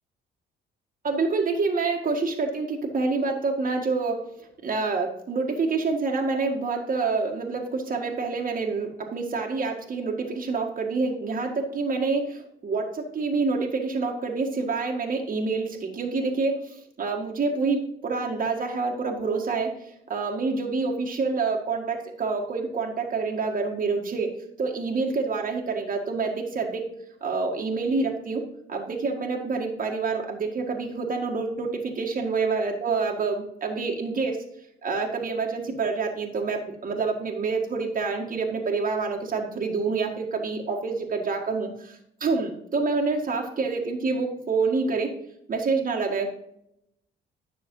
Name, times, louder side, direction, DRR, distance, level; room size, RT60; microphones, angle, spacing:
voice 1, 1.0-4.2 4.6-26.9 27.2-28.4 28.7-34.4 34.8-45.1 45.5-46.3, right 4 dB, 45° right, 0 dB, 1.8 m, -27 dB
10.0 x 6.4 x 3.8 m, 0.75 s
cardioid pair, 90°, 20 cm